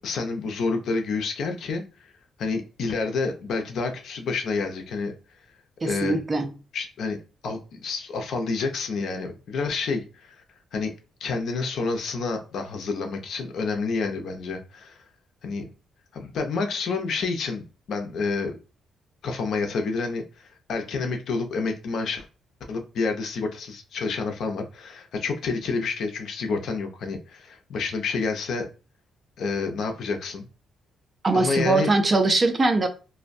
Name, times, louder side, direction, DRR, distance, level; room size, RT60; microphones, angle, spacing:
voice 1, 0.0-1.8 2.4-5.1 5.8-6.2 6.7-7.2 7.4-10.4 10.7-10.9 11.2-15.0 15.4-15.6 16.1-18.6 19.2-22.3 22.7-28.7 29.4-30.5 31.3-31.9, left 4 dB, 65° left, 0.5 m, -29 dB
voice 2, 5.8-6.5 31.2-32.9, right 2 dB, 25° right, 0.4 m, -21 dB
2.5 x 2.1 x 2.5 m
cardioid pair, 125°, 0 cm